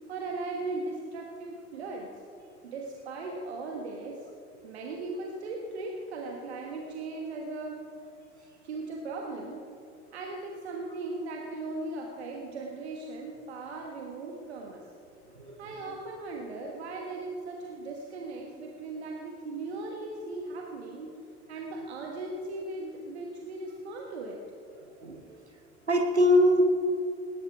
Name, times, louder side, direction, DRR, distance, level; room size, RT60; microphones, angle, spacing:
voice 1, 0.1-2.1 2.6-4.3 4.6-7.8 8.6-9.6 10.1-14.8 15.6-21.1 21.5-24.4, right 3 dB, 75° right, 1 dB, 1.4 m, -38 dB
voice 2, 24.8-25.4 25.9-26.6, left 1 dB, 90° right, 4 dB, 0.9 m, -23 dB
19.0 x 19.0 x 3.5 m, 2.6 s
figure-of-eight pair, 55°, 32 cm